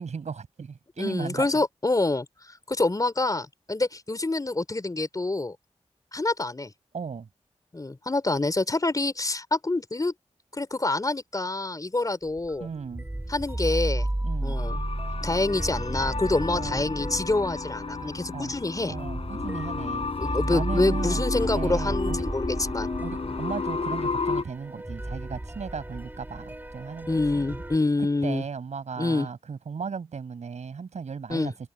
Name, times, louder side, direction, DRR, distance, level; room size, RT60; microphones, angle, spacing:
voice 1, 0.0-1.5 6.9-7.3 12.6-13.0 14.2-14.6 15.1-15.2 16.5-16.9 18.3-18.5 18.9-21.2 21.5-22.2 23.0-27.1 28.2-31.5, right 5 dB, 85° right, 6.3 m, -36 dB
voice 2, 1.0-2.3 2.7-5.6 6.1-6.7 7.7-10.1 10.5-12.7 13.3-14.1 14.4-14.8 15.2-19.0 20.2-22.9 23.2-23.3 27.1-28.4 29.0-29.3 31.3-31.5, left 2 dB, 30° left, 3.8 m, -27 dB
sound 1, 12.3-27.8, right 1 dB, 15° right, 3.3 m, -33 dB
sound 2, 14.6-24.4, left 4 dB, 60° left, 4.3 m, -32 dB
wide cardioid pair, 70°, 12 cm